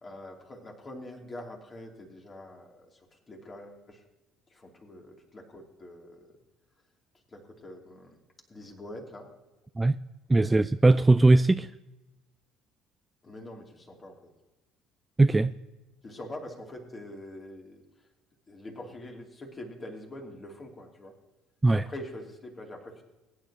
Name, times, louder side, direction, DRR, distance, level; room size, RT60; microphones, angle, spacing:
voice 1, 0.0-4.0 4.5-6.4 7.1-8.2 8.5-9.3 10.4-10.5 13.2-14.3 16.0-18.1 18.5-21.2 21.7-23.0, left 1 dB, 30° left, 2.9 m, -44 dB
voice 2, 10.3-11.7 15.2-15.5 21.6-21.8, right 2 dB, 15° right, 0.3 m, -20 dB
21.5 x 9.9 x 2.9 m
figure-of-eight pair, 55°, 0 cm